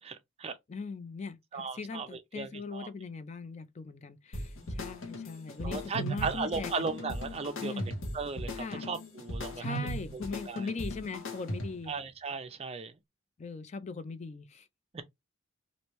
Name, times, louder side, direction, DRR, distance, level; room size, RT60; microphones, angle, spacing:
voice 1, 0.0-0.6 1.5-2.9 4.7-4.8 5.6-7.7 8.1-9.8 10.1-10.7 11.9-13.0 14.9-15.0, right 4 dB, 30° right, 0.5 m, -37 dB
voice 2, 0.7-6.9 7.6-7.9 8.6-8.9 9.6-11.9 13.4-14.7, left 4 dB, 35° left, 0.4 m, -40 dB
sound 1, 4.3-11.9, equal, 75° left, 1.0 m, -38 dB
3.0 x 2.6 x 3.0 m
head